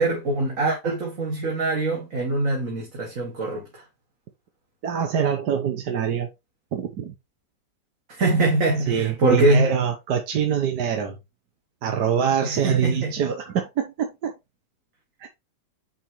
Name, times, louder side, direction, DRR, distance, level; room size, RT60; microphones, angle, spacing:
voice 1, 0.0-3.6 8.1-9.7 12.4-13.1, right 2 dB, 50° right, 2.3 m, -23 dB
voice 2, 4.8-6.3 6.7-7.1 8.9-11.2 11.8-14.3 15.2-15.3, right 8 dB, 75° right, 1.6 m, -24 dB
9.4 x 4.7 x 3.1 m
omnidirectional pair, 1.8 m